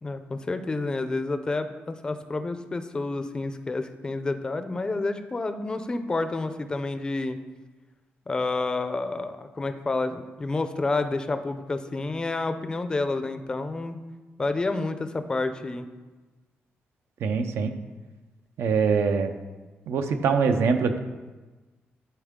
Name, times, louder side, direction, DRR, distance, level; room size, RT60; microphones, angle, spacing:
voice 1, 0.0-7.4 8.3-14.0 14.4-15.9, left 3 dB, 20° left, 9 dB, 0.5 m, -29 dB
voice 2, 17.2-17.7 18.6-19.3 19.9-21.0, right 5 dB, 80° right, 7 dB, 0.7 m, -23 dB
12.0 x 4.5 x 3.6 m, 1.2 s
wide cardioid pair, 170°, 4 cm